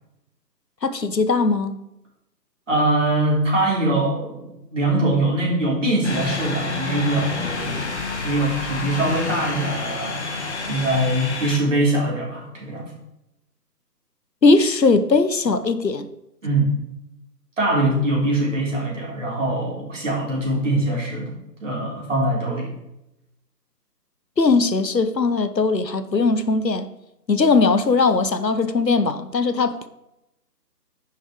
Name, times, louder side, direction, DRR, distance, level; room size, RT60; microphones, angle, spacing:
voice 1, 0.8-1.8 14.4-16.1 24.4-26.9 27.3-29.9, left 3 dB, 80° left, 1.1 m, -19 dB
voice 2, 2.7-7.9 8.2-10.2 10.7-12.9 16.4-16.7 17.6-21.3 21.6-22.7, right 1 dB, 45° right, 3.7 m, -22 dB
sound 1, 6.0-11.6, left 4 dB, 40° left, 1.5 m, -28 dB
10.5 x 7.1 x 3.7 m
figure-of-eight pair, 155°, 49 cm